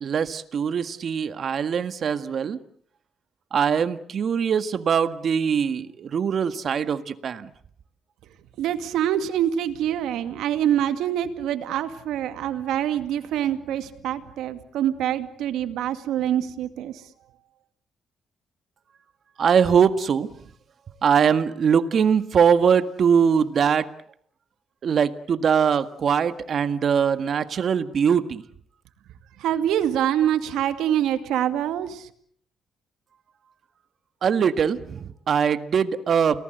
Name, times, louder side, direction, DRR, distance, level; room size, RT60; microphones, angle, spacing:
voice 1, 0.0-2.6 3.5-7.5 19.4-20.3 21.0-23.9 24.8-28.4 34.2-36.4, right 7 dB, 55° right, 11 dB, 1.8 m, -22 dB
voice 2, 8.6-17.0 29.4-32.1, right 10 dB, 85° right, 9 dB, 2.2 m, -25 dB
30.0 x 19.0 x 8.1 m, 0.63 s
cardioid pair, 90°, 0 cm